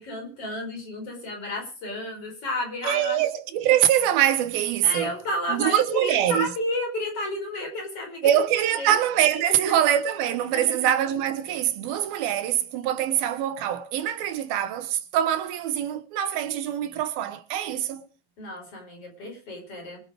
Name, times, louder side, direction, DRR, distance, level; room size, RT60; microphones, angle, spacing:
voice 1, 0.0-3.3 4.8-8.3 8.8-9.0 9.5-9.7 10.5-10.6 18.4-20.0, left 1 dB, 40° left, 5.9 m, -32 dB
voice 2, 2.8-5.1 5.5-6.5 8.2-18.0, right 11 dB, 85° right, 3.0 m, -24 dB
23.5 x 8.9 x 5.1 m
omnidirectional pair, 4.1 m